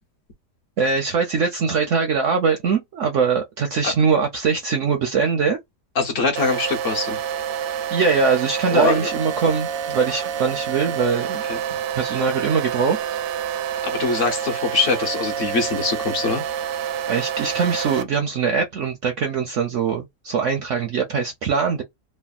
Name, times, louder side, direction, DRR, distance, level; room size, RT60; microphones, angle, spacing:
voice 1, 0.8-5.6 7.9-11.4 11.9-13.0 17.0-21.8, right 5 dB, 65° right, 0.7 m, -22 dB
voice 2, 6.0-7.2 8.7-9.1 11.5-11.6 13.8-16.4, left 4 dB, 55° left, 1.1 m, -23 dB
sound 1, 6.4-18.0, right 9 dB, 85° right, 1.2 m, -28 dB
3.3 x 2.0 x 2.3 m
omnidirectional pair, 1.8 m